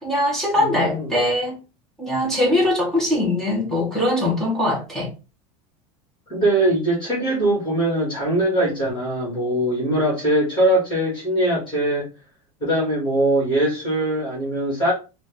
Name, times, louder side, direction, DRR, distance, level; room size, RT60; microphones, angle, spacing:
voice 1, 0.0-1.5 2.0-5.1, left 1 dB, 5° left, 1.5 m, -21 dB
voice 2, 0.6-1.1 6.3-12.1 12.6-14.9, right 1 dB, 25° left, 2.6 m, -21 dB
4.3 x 2.8 x 3.6 m
supercardioid pair, 160°, 18 cm